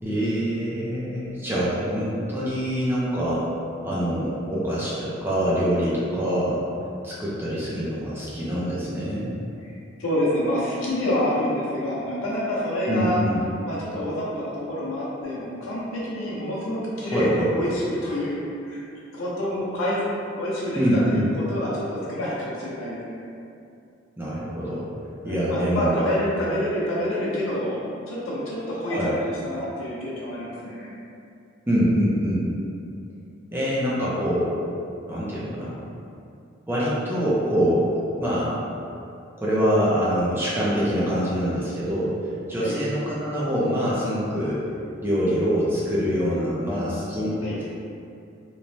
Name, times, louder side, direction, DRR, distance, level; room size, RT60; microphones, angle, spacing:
voice 1, 0.0-3.5 3.8-6.6 7.0-9.3 12.9-13.4 17.0-17.5 20.8-21.3 24.2-24.9 25.2-25.9 28.9-29.2 31.7-32.5 33.5-34.6 35.1-35.8 36.7-37.9 38.2-38.7 39.4-42.1 42.5-44.6 45.0-47.6, equal, 10° right, -8 dB, 0.4 m, -24 dB
voice 2, 10.0-13.2 13.6-18.8 19.1-20.0 20.4-23.2 25.2-30.9 42.5-42.8 47.4-47.6, left 1 dB, 80° left, -6 dB, 0.7 m, -27 dB
3.0 x 2.1 x 2.6 m, 2.5 s
head